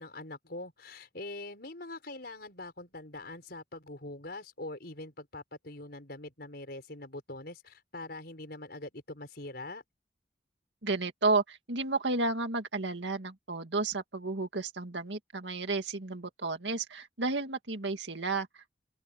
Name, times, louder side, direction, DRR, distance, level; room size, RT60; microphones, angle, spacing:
voice 1, 0.0-9.8, left 2 dB, 60° left, 5.5 m, -43 dB
voice 2, 10.8-18.7, right 3 dB, 85° right, 2.1 m, -32 dB
open air
head